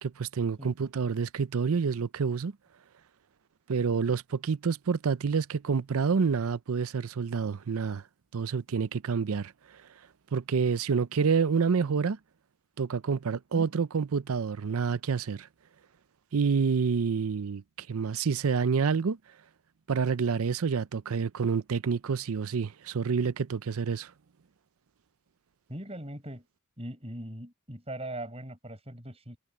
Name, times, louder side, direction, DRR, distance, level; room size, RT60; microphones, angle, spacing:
voice 1, 0.0-2.5 3.7-8.0 8.3-9.5 10.3-12.2 12.8-15.5 16.3-19.2 19.9-24.1, right 5 dB, 75° right, 0.5 m, -28 dB
voice 2, 25.7-26.5 26.8-29.4, right 1 dB, 25° right, 5.7 m, -40 dB
head